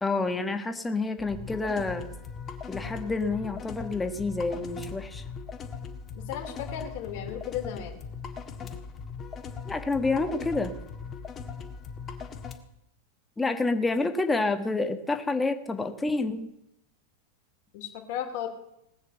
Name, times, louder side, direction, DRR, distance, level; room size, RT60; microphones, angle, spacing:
voice 1, 0.0-2.1 2.7-5.2 8.6-8.7 9.6-10.8 13.4-16.5, left 3 dB, 10° left, 7 dB, 1.5 m, -28 dB
sound 1, 1.2-12.6, left 5 dB, 30° left, 1.8 m, -39 dB
voice 2, 6.1-8.0 17.7-18.5, left 9 dB, 55° left, 2 dB, 2.6 m, -35 dB
19.0 x 6.6 x 7.8 m, 0.83 s
hypercardioid pair, 100°, 0 cm